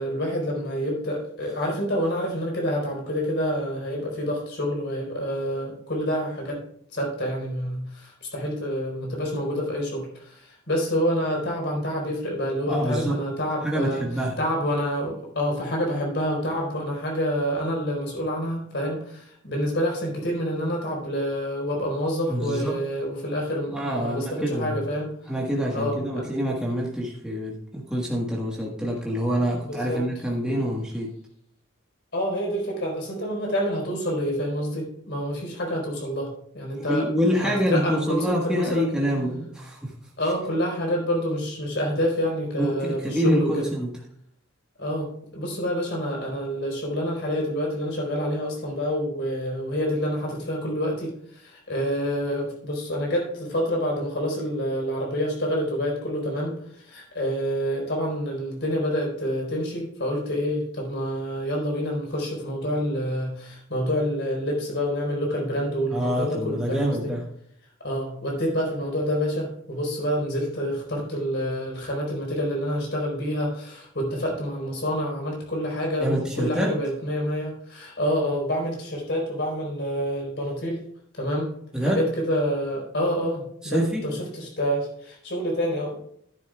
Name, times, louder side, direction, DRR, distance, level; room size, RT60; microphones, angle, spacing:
voice 1, 0.0-6.6 6.9-14.0 14.4-25.1 25.7-26.3 29.6-30.0 32.1-37.1 37.4-38.9 40.2-43.5 44.8-66.9 67.8-80.8 81.2-81.5 81.8-86.0, equal, 55° left, -1 dB, 4.3 m, -27 dB
voice 2, 12.7-13.2 13.6-14.4 22.3-22.8 23.7-24.8 25.3-31.1 36.7-39.9 42.6-43.9 65.9-67.3 76.0-76.8 81.7-82.0 83.6-84.1, equal, 5° right, -3 dB, 1.4 m, -26 dB
12.0 x 10.5 x 2.3 m, 0.70 s
head